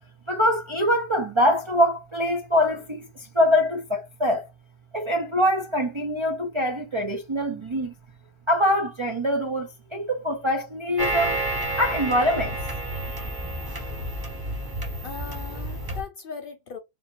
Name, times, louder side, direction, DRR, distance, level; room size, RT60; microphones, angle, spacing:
voice 1, 0.3-4.5 4.9-7.9 8.5-11.4 11.8-12.6, equal, 40° right, 0.4 m, -24 dB
sound 1, 11.0-16.0, right 1 dB, 20° right, 0.8 m, -30 dB
voice 2, 15.0-16.8, left 6 dB, 60° left, 0.6 m, -38 dB
3.4 x 2.5 x 4.3 m
omnidirectional pair, 1.3 m